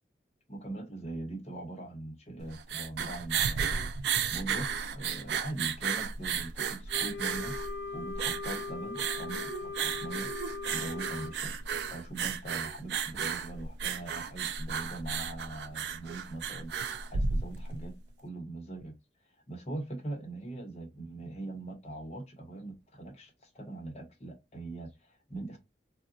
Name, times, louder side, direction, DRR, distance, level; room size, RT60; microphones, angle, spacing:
voice 1, 0.5-3.9 4.3-7.5 7.9-10.3 10.7-18.9 19.5-25.6, right 2 dB, 35° left, 0.8 m, -41 dB
sound 1, 2.4-17.9, right 6 dB, 70° right, 0.3 m, -34 dB
Wind instrument woodwind instrument, 6.9-11.4, left 4 dB, 75° left, 0.4 m, -40 dB
3.7 x 2.1 x 2.5 m
head